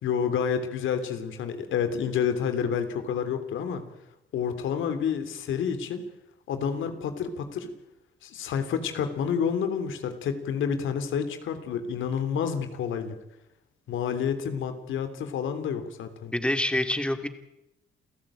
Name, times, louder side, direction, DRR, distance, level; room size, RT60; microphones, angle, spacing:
voice 1, 0.0-3.8 4.3-6.0 6.5-7.7 8.2-13.1 13.9-16.3, left 7 dB, 80° left, 9 dB, 3.2 m, -29 dB
voice 2, 16.3-17.3, left 1 dB, 5° left, 8 dB, 2.5 m, -26 dB
28.5 x 14.5 x 8.9 m, 0.89 s
cardioid pair, 90°, 20 cm